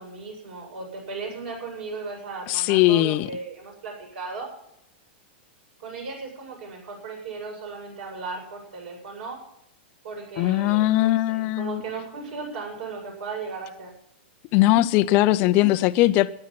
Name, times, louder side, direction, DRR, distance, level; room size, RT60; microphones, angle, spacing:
voice 1, 0.0-4.5 5.8-9.4 10.0-13.9, right 4 dB, 60° right, 8.0 m, -36 dB
voice 2, 2.5-3.3 10.4-11.8 14.5-16.3, left 16 dB, 30° left, 0.5 m, -20 dB
13.5 x 9.9 x 7.6 m
supercardioid pair, 160°, 6 cm